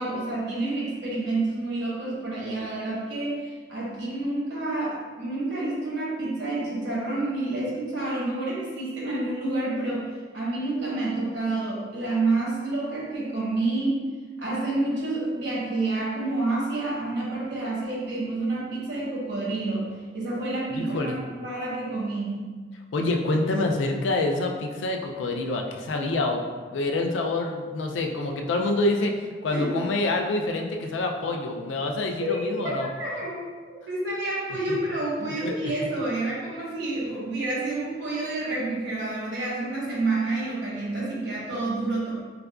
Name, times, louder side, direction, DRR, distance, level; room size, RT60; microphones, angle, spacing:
voice 1, 0.0-10.1 10.3-14.0 14.4-22.5 29.5-29.7 32.2-33.4 33.9-42.1, right 2 dB, 70° right, -5 dB, 1.1 m, -29 dB
voice 2, 20.7-21.2 22.9-26.4 26.7-32.9 34.7-34.8 35.2-35.7, left 2 dB, 85° left, 2 dB, 0.4 m, -27 dB
4.7 x 2.2 x 2.3 m, 1.5 s
head